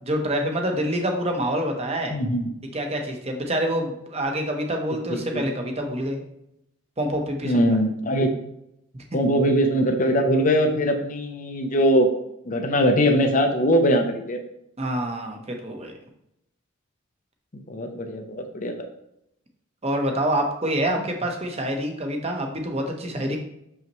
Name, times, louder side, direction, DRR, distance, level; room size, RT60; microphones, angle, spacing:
voice 1, 0.0-2.1 2.7-6.2 7.0-7.6 14.8-15.9 19.8-23.4, right 1 dB, 30° right, 3 dB, 0.9 m, -26 dB
voice 2, 2.1-2.5 5.1-5.5 7.4-8.3 9.1-12.1 12.5-14.4 17.5-18.9, equal, 35° left, 4 dB, 0.6 m, -21 dB
6.5 x 5.5 x 3.0 m, 0.80 s
head